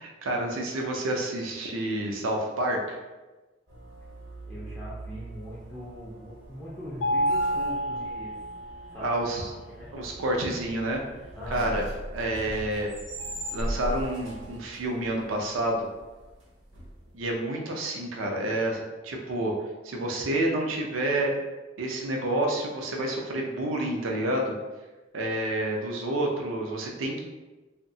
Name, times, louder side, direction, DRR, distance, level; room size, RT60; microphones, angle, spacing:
voice 1, 0.0-3.0 9.0-9.5 9.9-11.0 11.5-11.9 12.1-12.9 13.5-15.9 17.1-19.5 19.8-21.4 21.8-24.5 25.1-27.2, right 1 dB, 90° right, 0 dB, 0.5 m, -29 dB
sound 1, 3.7-17.3, right 1 dB, 75° right, 0.9 m, -40 dB
voice 2, 4.5-8.3 8.9-9.1 9.4-9.9 11.3-11.8, left 1 dB, 10° left, -9 dB, 0.3 m, -41 dB
Mallet percussion, 7.0-9.0, equal, 90° left, 0.5 m, -28 dB
2.7 x 2.1 x 2.6 m, 1.2 s
head